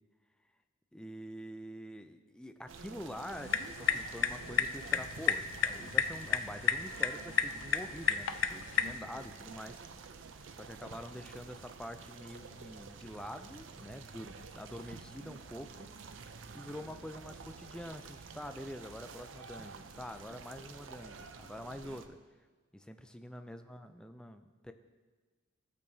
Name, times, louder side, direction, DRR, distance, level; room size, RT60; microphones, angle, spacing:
voice 1, 0.9-9.8 10.6-15.9 16.5-22.2 22.7-24.7, equal, 5° left, 7 dB, 0.3 m, -46 dB
sound 1, 2.7-22.1, right 4 dB, 70° right, 0.5 m, -50 dB
sound 2, 3.3-9.0, left 8 dB, 75° left, 0.4 m, -33 dB
15.0 x 6.6 x 2.7 m, 1.4 s
head